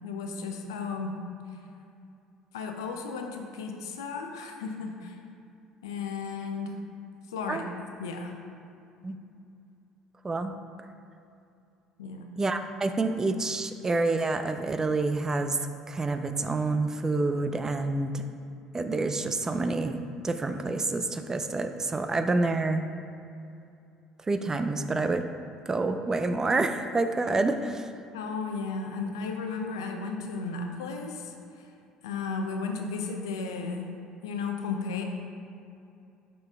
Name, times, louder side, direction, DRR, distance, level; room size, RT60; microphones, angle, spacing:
voice 1, 0.0-1.2 2.5-5.2 5.8-6.8 7.3-7.7 8.0-8.4 12.0-12.3 28.1-31.7 32.0-33.9 34.2-35.0, left 4 dB, 80° left, 3 dB, 0.6 m, -34 dB
voice 2, 12.4-15.6 15.9-18.3 18.7-22.9 24.3-25.2 25.7-27.9, right 3 dB, 25° right, 8 dB, 0.4 m, -28 dB
5.5 x 5.3 x 3.5 m, 2.6 s
hypercardioid pair, 60°, 2 cm